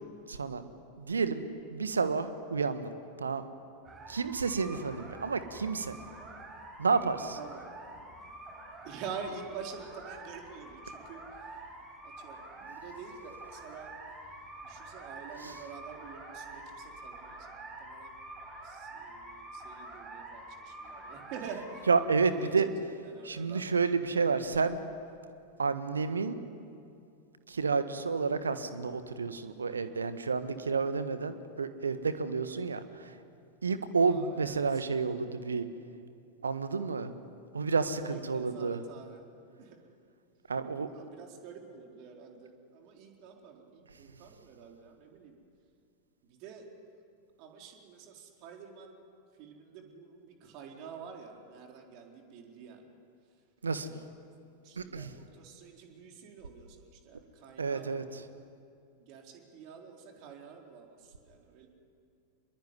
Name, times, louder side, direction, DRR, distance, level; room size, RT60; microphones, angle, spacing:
voice 1, 0.3-0.6 1.0-1.4 1.7-3.4 4.1-5.9 6.8-7.4 15.4-15.6 21.9-22.7 23.2-24.8 25.6-26.4 27.5-33.2 33.6-35.7 36.4-37.1 37.5-38.8 40.5-40.9 53.6-53.9 54.8-55.1 57.6-58.3, right 4 dB, 75° right, 11 dB, 1.4 m, -30 dB
sound 1, 3.8-22.0, right 2 dB, 25° right, 7.8 m, -47 dB
voice 2, 7.4-7.7 8.8-11.2 12.0-13.9 14.6-18.1 18.6-21.9 22.4-22.5 23.1-23.6 33.9-34.8 38.0-39.2 39.6-39.8 40.8-45.3 46.3-46.6 47.4-49.0 49.4-52.8 53.8-54.0 54.6-58.0 59.0-61.7, right 6 dB, 45° right, 2 dB, 4.2 m, -47 dB
25.5 x 21.5 x 9.9 m, 2.5 s
figure-of-eight pair, 90°, 0 cm